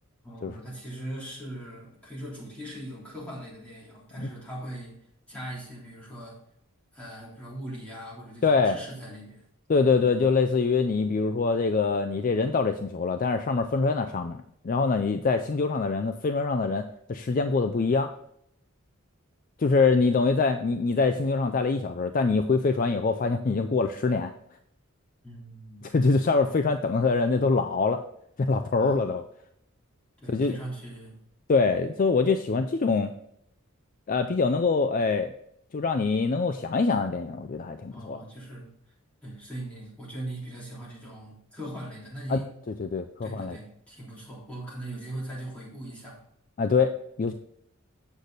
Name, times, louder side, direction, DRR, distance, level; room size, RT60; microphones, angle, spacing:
voice 1, 0.2-5.0 5.3-6.4 6.9-9.4 25.2-25.8 28.8-29.0 30.2-31.2 37.9-38.7 39.2-42.5 43.2-46.2, right 1 dB, 5° left, -6 dB, 3.2 m, -40 dB
voice 2, 8.4-8.8 9.7-18.1 19.6-24.3 25.8-28.0 28.4-29.2 30.3-30.6 31.5-33.1 34.1-35.3 35.7-38.2 42.3-42.4 42.8-43.6 46.6-47.3, left 4 dB, 40° left, 8 dB, 0.4 m, -24 dB
8.2 x 6.5 x 4.0 m, 0.72 s
head